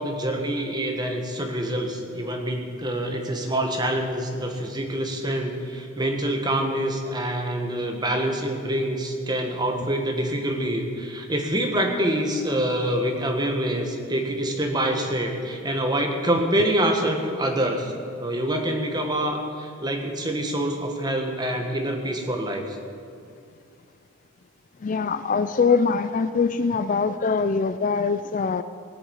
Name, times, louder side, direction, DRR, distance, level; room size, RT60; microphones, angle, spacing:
voice 1, 0.0-22.8, right 1 dB, 20° right, 3 dB, 1.5 m, -26 dB
voice 2, 24.8-28.6, left 5 dB, 35° left, 12 dB, 0.3 m, -23 dB
18.5 x 7.8 x 8.1 m, 2.5 s
head